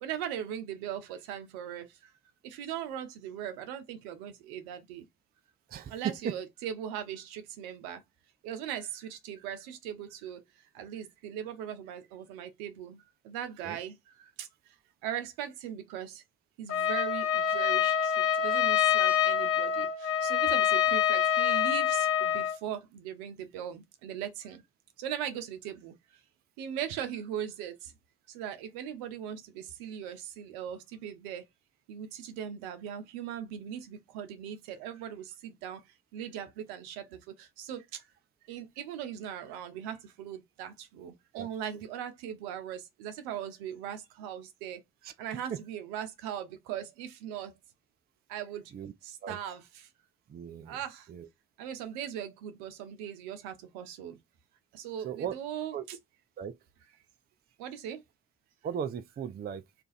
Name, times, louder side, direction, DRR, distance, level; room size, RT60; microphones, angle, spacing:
voice 1, 0.0-1.9 2.4-5.0 5.9-8.0 8.4-10.4 10.7-14.0 14.4-14.5 15.0-16.2 16.6-24.6 25.0-25.9 26.6-27.9 28.3-31.4 31.9-35.8 36.1-37.8 38.5-44.8 45.2-47.5 48.3-48.6 49.0-49.9 50.7-51.1 51.6-54.2 54.7-56.0 57.6-58.0, right 9 dB, 75° right, 0.7 m, -39 dB
Trumpet, 16.7-22.6, left 9 dB, 35° left, 1.0 m, -26 dB
voice 2, 50.3-50.8 51.1-51.3 55.0-55.3 55.7-55.8 56.4-56.5 58.6-59.6, right 8 dB, 25° right, 0.4 m, -37 dB
2.5 x 2.2 x 3.9 m
hypercardioid pair, 40°, 40 cm